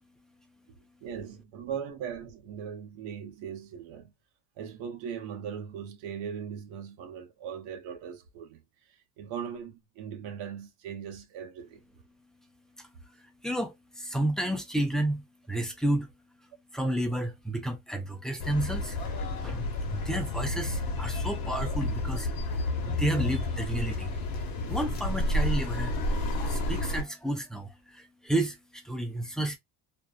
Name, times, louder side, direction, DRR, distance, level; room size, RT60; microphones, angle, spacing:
voice 1, 1.0-4.1 4.6-11.8, right 8 dB, 80° right, 1.0 m, -39 dB
voice 2, 12.8-16.1 16.4-24.3 24.6-26.0 26.3-29.6, right 1 dB, ahead, 0.3 m, -32 dB
sound 1, 18.4-27.0, left 2 dB, 50° left, 0.9 m, -30 dB
2.6 x 2.2 x 2.4 m
cardioid pair, 130°, 45 cm